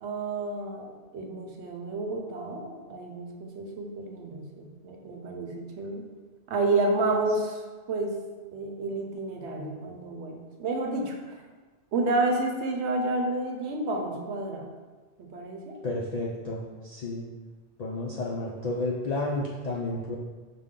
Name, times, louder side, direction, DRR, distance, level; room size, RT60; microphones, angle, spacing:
voice 1, 0.0-6.0 6.5-7.6 7.9-8.2 8.5-11.4 11.9-14.7 15.2-15.8, right 2 dB, 70° right, 2 dB, 0.9 m, -30 dB
voice 2, 15.8-17.2 17.8-20.2, left 2 dB, 65° left, -4 dB, 0.4 m, -31 dB
5.1 x 2.2 x 3.6 m, 1.3 s
omnidirectional pair, 1.2 m